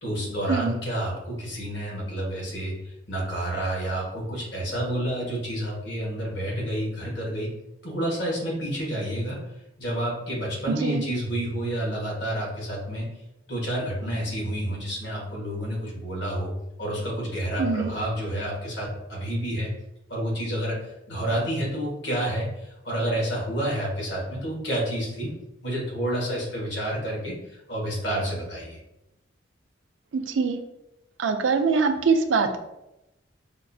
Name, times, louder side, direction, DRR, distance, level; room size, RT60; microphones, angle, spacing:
voice 1, 0.0-7.5 7.8-9.4 9.8-13.0 13.5-16.5 16.8-19.7 20.1-25.3 25.6-28.8, right 1 dB, 65° left, -3 dB, 1.4 m, -29 dB
voice 2, 17.6-17.9 30.1-30.6 31.2-32.6, right 4 dB, 80° right, 7 dB, 0.4 m, -23 dB
5.2 x 2.3 x 2.6 m, 0.91 s
head